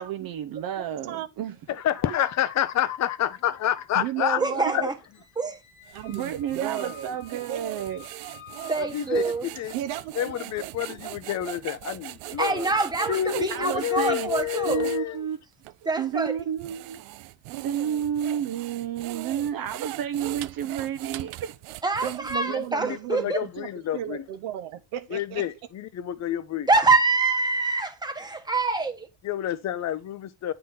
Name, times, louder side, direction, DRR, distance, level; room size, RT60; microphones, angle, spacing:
voice 1, 0.0-1.6 6.1-8.0 13.5-14.3 14.7-15.4 16.0-17.0 17.6-21.5, right 9 dB, 45° right, 0.7 m, -31 dB
voice 2, 0.8-1.3 3.9-4.9 5.9-7.8 9.7-11.0 22.0-25.4, right 10 dB, 75° right, 1.0 m, -34 dB
voice 3, 1.7-4.9 8.8-9.2 9.6-9.7 10.2-12.7 13.1-15.2 22.5-24.2 25.1-26.7 29.2-30.5, left 11 dB, 35° left, 0.6 m, -28 dB
voice 4, 4.4-4.9 5.4-5.5 8.7-9.5 12.4-14.9 15.8-16.4 21.8-23.4 26.7-29.1, right 3 dB, 10° right, 1.1 m, -25 dB
Squeak, 5.1-9.6, left 10 dB, 65° left, 1.9 m, -50 dB
sound 1, 5.9-15.0 15.6-15.8 16.4-22.7, right 18 dB, 90° right, 0.6 m, -40 dB
8.2 x 3.9 x 4.0 m
cardioid pair, 120°, 50 cm